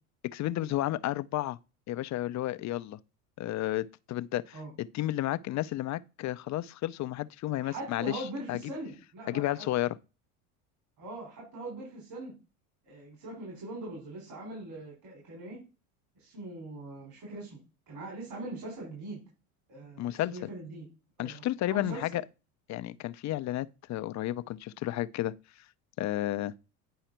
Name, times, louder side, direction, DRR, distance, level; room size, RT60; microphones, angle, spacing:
voice 1, 0.3-1.6 1.9-3.0 3.4-8.2 8.5-8.6 9.3-9.9 20.0-20.3 21.2-22.2 22.7-25.3 26.0-26.5, left 14 dB, 40° left, 0.6 m, -32 dB
voice 2, 7.6-9.7 11.0-12.3 12.8-15.6 16.2-17.6 17.9-19.2 19.7-20.9 21.2-22.1, right 2 dB, 55° right, 5.6 m, -41 dB
10.5 x 4.8 x 4.4 m
hypercardioid pair, 80°, 44 cm